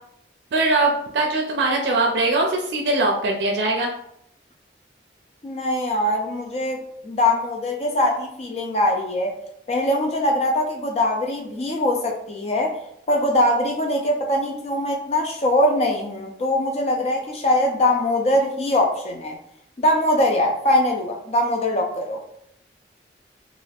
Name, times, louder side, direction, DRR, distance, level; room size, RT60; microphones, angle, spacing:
voice 1, 0.5-3.9, right 2 dB, 80° right, 1 dB, 0.4 m, -21 dB
voice 2, 5.4-9.3 9.7-12.8 13.1-19.4 19.8-22.2, left 1 dB, 35° left, 1 dB, 0.3 m, -22 dB
2.4 x 2.3 x 3.3 m, 0.74 s
head